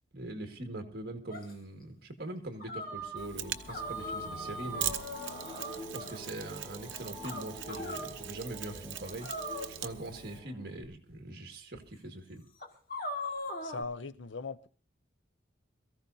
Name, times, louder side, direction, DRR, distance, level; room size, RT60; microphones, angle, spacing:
voice 1, 0.1-5.0 5.8-9.3 9.7-12.4, right 1 dB, 55° right, 1.9 m, -42 dB
sound 1, 1.3-1.5 2.6-3.3 3.7-6.2 7.2-8.1 9.2-10.2 11.1-11.2 11.7-11.8 12.6-13.8, equal, 50° left, 2.0 m, -39 dB
Mechanisms, 3.2-10.4, right 11 dB, 85° right, 0.8 m, -42 dB
sound 2, 3.3-10.8, equal, ahead, 3.4 m, -47 dB
voice 2, 13.6-14.7, left 4 dB, 85° left, 0.7 m, -39 dB
22.5 x 14.5 x 2.7 m
head